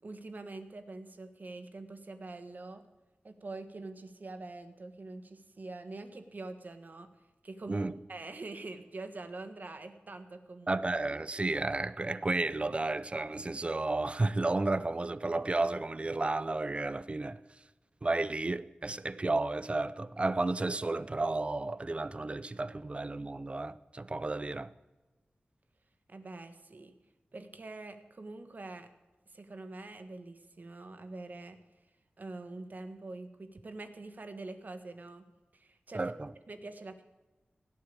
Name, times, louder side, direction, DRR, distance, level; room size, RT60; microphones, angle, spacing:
voice 1, 0.0-2.8 3.2-7.1 7.4-10.8 26.1-26.9 27.3-28.9 29.3-31.6 32.2-35.3 35.5-36.0 36.5-37.0, right 2 dB, 55° right, 1.6 m, -45 dB
voice 2, 10.7-17.4 18.0-24.7 35.9-36.3, right 2 dB, 35° right, 0.6 m, -32 dB
17.5 x 8.3 x 8.6 m
wide cardioid pair, 80°, 4 cm